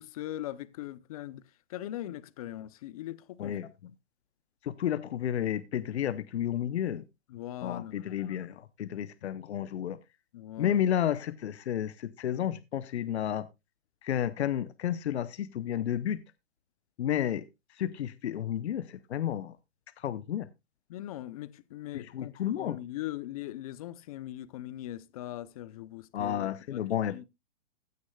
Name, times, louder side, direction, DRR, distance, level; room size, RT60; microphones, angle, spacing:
voice 1, 0.0-1.4 1.7-3.6 7.3-8.0 10.3-10.9 20.9-27.2, left 14 dB, 35° left, 0.6 m, -40 dB
voice 2, 4.7-7.0 7.6-8.5 8.8-10.0 10.6-13.4 14.0-16.2 17.0-17.4 17.8-18.9 19.1-19.5 20.0-20.5 21.9-22.8 26.1-27.2, left 10 dB, 75° left, 0.8 m, -31 dB
15.5 x 9.6 x 2.3 m
hypercardioid pair, 155°, 33 cm